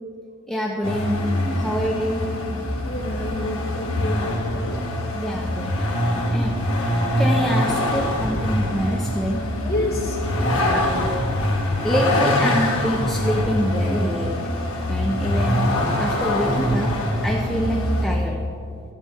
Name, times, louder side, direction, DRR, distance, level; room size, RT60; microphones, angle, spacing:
voice 1, 0.5-2.3 5.1-5.9 6.3-6.5 7.2-9.4 11.7-14.3 14.9-15.6 16.0-16.9 17.2-18.4, equal, ahead, -1 dB, 0.7 m, -26 dB
Vehicle, 0.8-18.1, left 1 dB, 70° left, 1.9 m, -23 dB
voice 2, 2.9-4.6 9.6-10.2 10.6-11.0, left 1 dB, 45° left, -3 dB, 2.5 m, -29 dB
12.0 x 8.1 x 5.8 m, 2.3 s
head